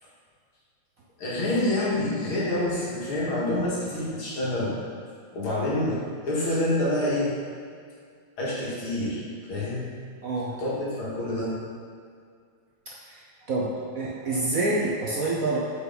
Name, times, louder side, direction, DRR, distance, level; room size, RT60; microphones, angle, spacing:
voice 1, 1.2-4.7 5.3-6.0 6.2-7.3 8.4-9.2 9.5-9.9 10.6-11.5, left 1 dB, 80° left, -7 dB, 2.7 m, -27 dB
voice 2, 10.2-10.5 12.9-13.0 13.5-15.6, right 2 dB, 55° right, -5 dB, 1.0 m, -27 dB
8.2 x 5.4 x 3.9 m, 2.2 s
omnidirectional pair, 2.3 m